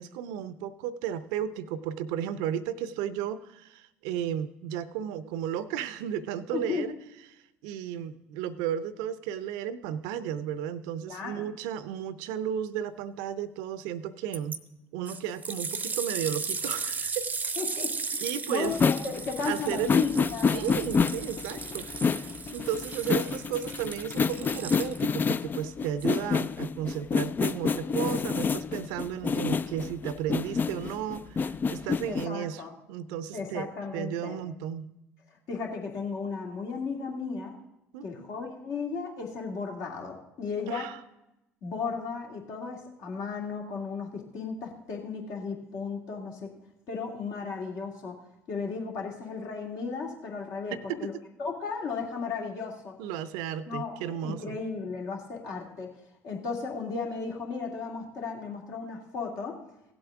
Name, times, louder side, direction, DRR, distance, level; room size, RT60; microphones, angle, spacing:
voice 1, 0.0-6.9 7.6-14.6 14.9-17.3 18.2-18.7 19.4-19.9 20.5-32.6 32.9-34.9 37.9-38.3 40.7-41.0 50.7-51.1 53.0-54.6, right 9 dB, 65° right, 15 dB, 0.6 m, -34 dB
voice 2, 6.5-6.9 11.1-11.5 17.6-20.6 32.1-32.7 33.3-34.4 35.5-37.6 38.0-40.9 41.6-46.5 46.9-48.2 48.5-51.1 51.4-53.0 53.7-55.9 56.2-59.6, left 5 dB, 55° left, 0 dB, 2.1 m, -35 dB
sound 1, 14.3-14.6 15.0-25.2 26.0-26.1, right 4 dB, 25° right, 0.7 m, -36 dB
sound 2, 18.7-32.3, left 5 dB, 25° left, 0.3 m, -28 dB
16.5 x 7.9 x 3.5 m, 0.89 s
hypercardioid pair, 60°, 7 cm